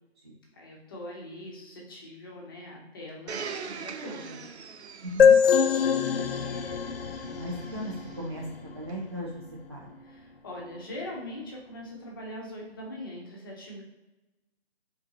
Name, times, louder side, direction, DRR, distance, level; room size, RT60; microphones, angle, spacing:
voice 1, 0.5-4.4 10.0-13.8, left 1 dB, 20° left, -2 dB, 0.7 m, -41 dB
Domestic sounds home sounds, 3.3-8.1 8.9-9.0, right 6 dB, 80° right, 0.5 m, -42 dB
voice 2, 5.0-5.4 7.1-9.4 9.7-10.0, right 1 dB, 25° right, -6 dB, 0.4 m, -37 dB
sound 1, 5.2-8.7, left 7 dB, 60° left, 0.5 m, -23 dB
4.2 x 3.6 x 2.9 m, 1.0 s
figure-of-eight pair, 150°, 33 cm